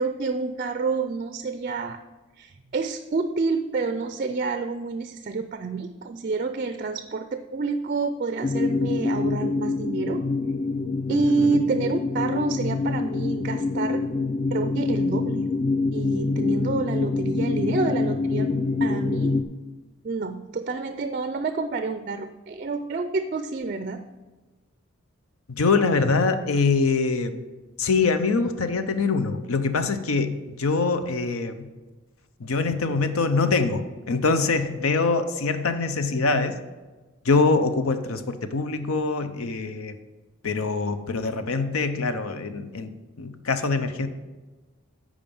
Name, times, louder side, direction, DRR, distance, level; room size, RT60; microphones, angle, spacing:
voice 1, 0.0-2.0 2.4-10.2 11.1-14.0 14.5-15.5 15.9-18.5 18.8-19.4 20.0-24.0, right 4 dB, 40° right, 9 dB, 0.4 m, -28 dB
sound 1, 8.4-19.4, left 3 dB, 30° left, 0.4 m, -25 dB
voice 2, 25.5-27.4 27.8-31.7 32.4-36.5 37.2-40.0 40.4-44.1, left 4 dB, 85° left, 10 dB, 0.7 m, -24 dB
8.8 x 5.0 x 6.9 m, 1.2 s
head